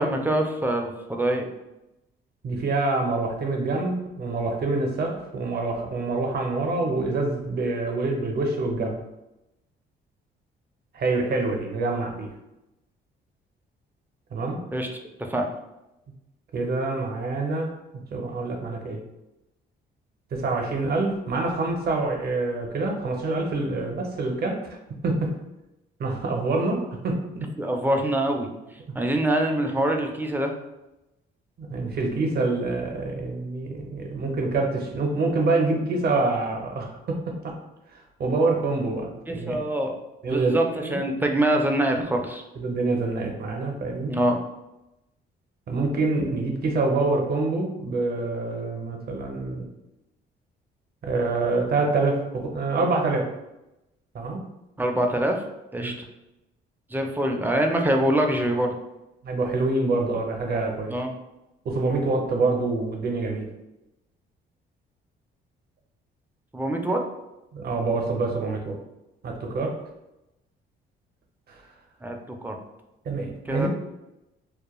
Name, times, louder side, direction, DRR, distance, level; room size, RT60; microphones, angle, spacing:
voice 1, 0.0-1.5 14.7-14.9 15.2-15.5 27.6-28.5 28.9-30.5 39.3-39.9 40.3-42.4 44.1-44.4 54.8-55.4 55.7-55.9 56.9-58.7 60.9-61.1 66.5-67.0 72.0-72.6 73.5-73.7, right 1 dB, 10° right, 2 dB, 0.3 m, -24 dB
voice 2, 2.4-9.0 10.9-12.3 14.3-14.6 16.5-17.7 18.1-19.0 20.3-24.8 25.0-25.3 26.0-27.5 28.8-28.9 31.6-37.5 38.2-39.6 40.2-41.0 42.6-44.3 45.7-49.7 51.0-53.3 54.1-54.4 55.8-55.9 57.0-57.1 59.2-60.9 61.6-63.5 67.5-68.8 69.2-69.7 71.5-71.6 73.1-73.7, right 3 dB, 55° right, 2 dB, 0.6 m, -26 dB
2.2 x 2.1 x 2.9 m, 0.93 s
cardioid pair, 90°, 20 cm